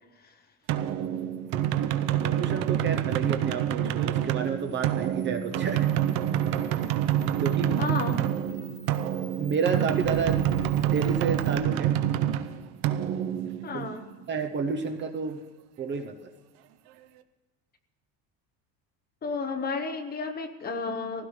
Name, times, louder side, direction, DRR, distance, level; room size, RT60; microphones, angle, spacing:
sound 1, 0.7-14.2, right 11 dB, 70° right, 0.9 m, -27 dB
voice 1, 2.2-5.9 7.4-7.8 9.4-10.4 10.8-11.9 13.7-13.9 14.3-15.4 15.8-16.3, right 5 dB, 30° right, 6 dB, 0.7 m, -30 dB
Camera, 4.6-11.6, right 1 dB, 5° right, 3.7 m, -52 dB
voice 2, 7.8-8.2 13.6-14.1 19.2-21.3, left 4 dB, 25° left, 6 dB, 1.1 m, -32 dB
sound 2, 10.0-12.7, left 2 dB, 55° left, 1.2 m, -44 dB
20.0 x 16.0 x 3.2 m, 1.3 s
cardioid pair, 165°, 38 cm